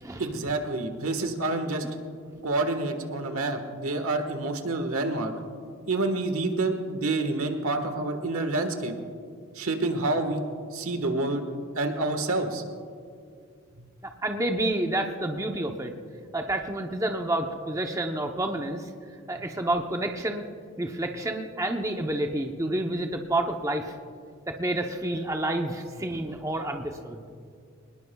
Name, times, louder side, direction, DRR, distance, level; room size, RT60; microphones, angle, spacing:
voice 1, 0.2-1.8 2.4-5.3 5.9-8.9 9.6-10.4 10.7-11.4 11.7-12.6, right 2 dB, 90° right, 6 dB, 1.5 m, -28 dB
voice 2, 14.0-15.9 16.3-18.9 19.3-20.5 20.8-23.9 24.5-27.2, right 1 dB, 15° right, 3 dB, 0.8 m, -29 dB
24.0 x 20.5 x 2.3 m, 2.2 s
head